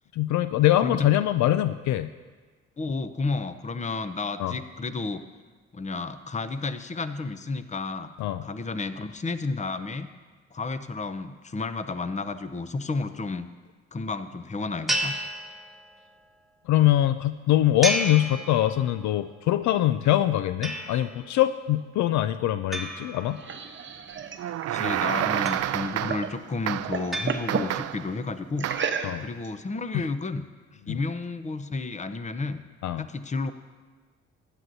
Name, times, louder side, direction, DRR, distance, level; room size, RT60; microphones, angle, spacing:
voice 1, 0.1-2.1 4.4-4.6 8.2-8.5 16.7-23.4 29.0-29.3 29.9-30.1 30.9-31.0 32.8-33.1, left 13 dB, 65° left, 12 dB, 0.4 m, -23 dB
voice 2, 2.8-5.2 5.7-8.1 8.4-10.1 10.5-13.5 13.9-15.1 24.7-28.7 29.2-30.4 30.7-32.6 33.0-33.5, left 3 dB, 25° left, 11 dB, 0.7 m, -32 dB
sound 1, 14.9-16.1 17.8-19.1 20.6-21.3 22.7-23.9 25.5-26.2 27.1-28.0, right 1 dB, ahead, 1.3 m, -32 dB
sound 2, 23.0-26.3 26.7-27.7 28.6-29.5, right 6 dB, 40° right, 0.9 m, -33 dB
sound 3, 24.4-26.4 26.7-27.1 27.5-28.1 28.6-29.0, right 12 dB, 55° right, 0.4 m, -29 dB
15.5 x 9.9 x 2.7 m, 1.4 s
supercardioid pair, 60°, 30 cm